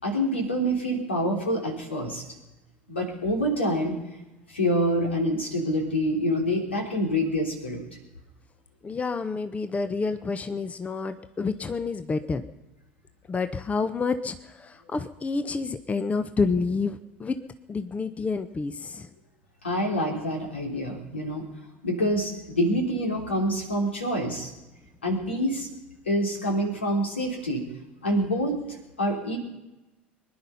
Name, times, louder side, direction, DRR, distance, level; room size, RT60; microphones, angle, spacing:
voice 1, 0.0-2.2 2.9-3.9 4.5-7.8 19.6-21.4 21.8-24.5 25.0-25.7 26.0-27.6 28.0-28.6 29.0-29.4, equal, 85° left, 1 dB, 3.2 m, -26 dB
voice 2, 8.8-12.4 13.3-17.4 17.7-19.1, left 4 dB, 20° left, 11 dB, 0.9 m, -29 dB
23.0 x 10.5 x 5.6 m, 1.0 s
figure-of-eight pair, 70°, 6 cm